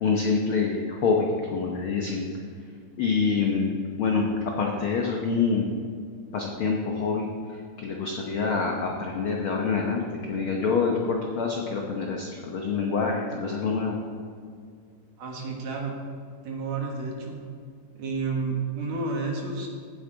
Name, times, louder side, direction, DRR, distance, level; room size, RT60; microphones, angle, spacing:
voice 1, 0.0-2.3 3.0-4.3 4.6-5.7 6.3-14.0, left 5 dB, 80° left, 0 dB, 1.1 m, -26 dB
voice 2, 15.2-15.9 16.4-17.4 18.0-19.7, right 4 dB, 60° right, 0 dB, 2.5 m, -30 dB
16.5 x 8.3 x 3.9 m, 2.2 s
omnidirectional pair, 3.8 m